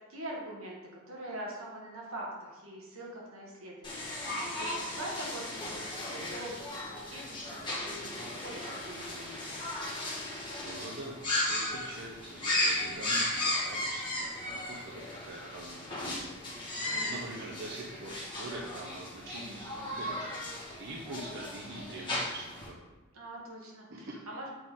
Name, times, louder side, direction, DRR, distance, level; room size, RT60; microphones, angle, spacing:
voice 1, 0.1-4.1 4.6-9.6 16.8-17.2 23.1-24.5, right 1 dB, 80° right, -2 dB, 1.4 m, -43 dB
sound 1, 3.8-22.7, left 1 dB, 20° left, 1.4 m, -36 dB
voice 2, 10.6-11.1 11.5-16.0 16.4-16.5 17.1-20.3 20.8-22.8 23.9-24.1, right 1 dB, 55° right, -3 dB, 0.7 m, -44 dB
6.8 x 4.0 x 3.6 m, 1.1 s
head